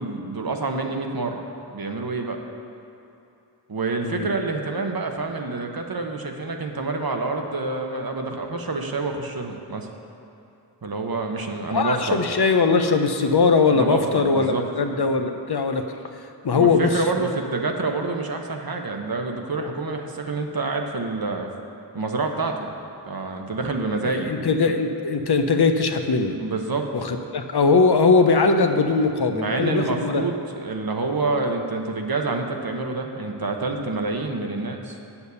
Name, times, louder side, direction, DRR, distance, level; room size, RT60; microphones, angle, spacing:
voice 1, 0.0-1.4 1.7-2.4 3.7-9.9 10.8-12.2 13.7-14.7 16.5-21.5 21.9-22.7 23.0-24.3 26.4-26.9 29.0-35.0, right 3 dB, 60° right, 3 dB, 1.0 m, -27 dB
voice 2, 11.7-15.8 16.4-17.0 24.0-26.3 27.0-30.2, left 4 dB, 70° left, 6 dB, 0.8 m, -20 dB
8.2 x 7.1 x 6.9 m, 2.7 s
wide cardioid pair, 60°, 41 cm